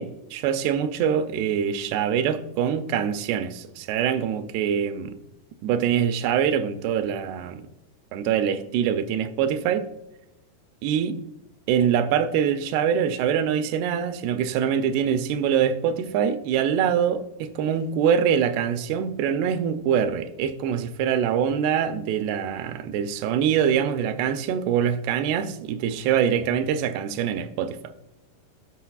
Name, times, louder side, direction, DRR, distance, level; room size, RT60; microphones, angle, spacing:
voice 1, 0.0-5.2 5.6-7.6 8.1-9.9 10.8-11.2 11.7-27.8, right 8 dB, 85° right, 2.6 m, -24 dB
14.0 x 5.7 x 2.3 m
omnidirectional pair, 4.5 m